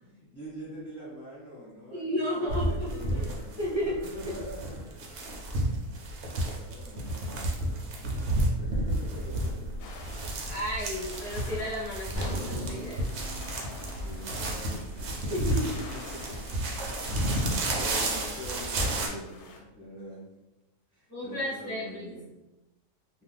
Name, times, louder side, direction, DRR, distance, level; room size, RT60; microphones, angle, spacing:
voice 1, 0.0-5.2 6.0-10.1 10.4-10.5 14.0-16.7 17.3-20.3 20.9-22.3, equal, 5° left, -8 dB, 1.2 m, -45 dB
voice 2, 1.9-2.9 3.1-3.2 3.6-3.9 10.5-13.2 15.3-15.8 21.1-22.1, equal, 15° right, -12 dB, 0.8 m, -33 dB
sound 1, 2.5-19.1, right 1 dB, 65° right, 0.7 m, -32 dB
sound 2, 9.8-19.6, left 3 dB, 85° left, 1.2 m, -48 dB
sound 3, 12.1-16.2 16.5-16.7 17.3-17.4, right 1 dB, 65° left, 0.7 m, -40 dB
2.5 x 2.3 x 3.4 m, 1.0 s
omnidirectional pair, 1.7 m